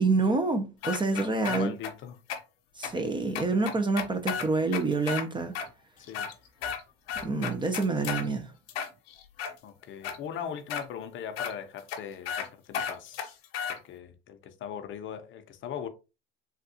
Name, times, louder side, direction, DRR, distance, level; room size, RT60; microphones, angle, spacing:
voice 1, 0.0-1.7 2.8-5.5 7.2-8.5, right 3 dB, 15° right, 0.4 m, -27 dB
sound 1, 0.8-1.9 2.3-2.4 2.8-2.9 3.3-5.2 5.5-5.7 6.0-6.8 7.1-8.3 8.7-9.5 10.0-10.2 10.7-10.8 11.4-11.5 11.9-12.0 12.3-12.5 12.7-13.8, left 7 dB, 80° left, 0.8 m, -33 dB
voice 2, 1.1-2.2 6.0-6.3 9.6-13.4 13.7-15.9, left 8 dB, 40° left, 0.6 m, -40 dB
3.4 x 2.3 x 2.7 m
hypercardioid pair, 90°, 30 cm